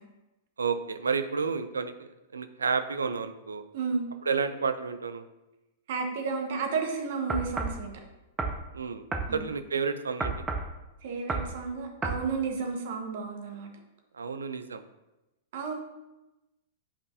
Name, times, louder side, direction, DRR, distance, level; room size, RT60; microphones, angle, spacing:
voice 1, 0.6-3.6 4.3-5.2 8.7-9.0 9.3-10.3 14.2-14.8, right 5 dB, 80° right, 10 dB, 0.5 m, -30 dB
voice 2, 5.9-7.9 9.3-9.5 11.0-13.7 15.5-15.7, right 5 dB, 60° right, 3 dB, 1.4 m, -32 dB
sound 1, 7.3-7.8 8.4-8.6 9.1-9.3 10.2-10.7 11.3-11.5 12.0-12.2, right 3 dB, 15° right, 0.8 m, -31 dB
8.5 x 5.3 x 2.8 m, 0.99 s
figure-of-eight pair, 100°, 0 cm